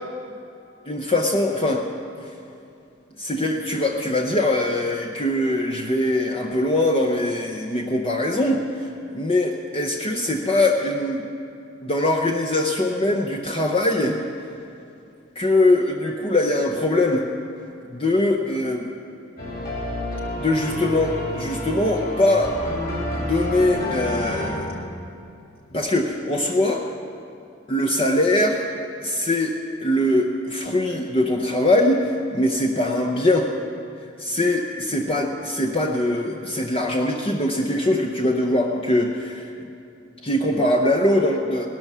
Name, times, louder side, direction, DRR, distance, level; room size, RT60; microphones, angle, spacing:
voice 1, 0.9-1.8 3.2-8.6 9.1-11.2 11.8-14.2 15.4-17.2 18.0-18.9 20.4-22.5 23.2-24.8 25.7-26.8 27.7-28.7 29.0-29.5 29.8-33.5 34.2-39.7 40.2-41.7, left 1 dB, 30° left, 1 dB, 0.7 m, -22 dB
sound 1, 19.4-24.5, left 1 dB, 55° left, 4.0 m, -29 dB
18.0 x 12.0 x 6.1 m, 2.6 s
head